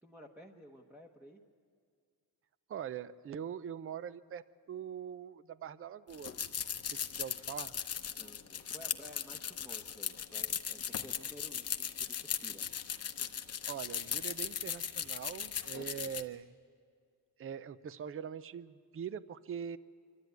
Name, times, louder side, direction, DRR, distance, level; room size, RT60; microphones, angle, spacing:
voice 1, 0.0-1.4 8.1-12.6, equal, 5° right, 2 dB, 1.0 m, -54 dB
voice 2, 2.7-6.4 6.8-7.7 13.7-16.5 17.4-19.8, right 8 dB, 35° right, 16 dB, 0.5 m, -43 dB
sound 1, 6.1-16.2, left 8 dB, 35° left, 0.9 m, -38 dB
25.5 x 13.0 x 9.2 m, 2.2 s
cardioid pair, 135°, 41 cm